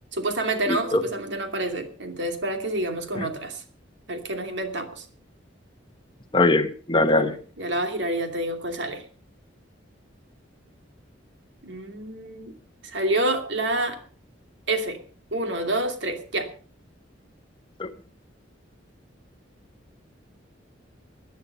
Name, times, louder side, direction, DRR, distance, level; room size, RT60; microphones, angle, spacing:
voice 1, 0.1-3.6 4.1-5.1 7.0-9.0 11.6-12.5 12.8-14.0 14.7-15.0 15.3-16.5, right 1 dB, 65° right, 6 dB, 2.6 m, -28 dB
voice 2, 0.7-1.0 3.2-3.3 6.3-7.3 17.8-17.9, left 2 dB, 25° left, 10 dB, 1.0 m, -21 dB
17.5 x 10.5 x 5.5 m, 0.41 s
head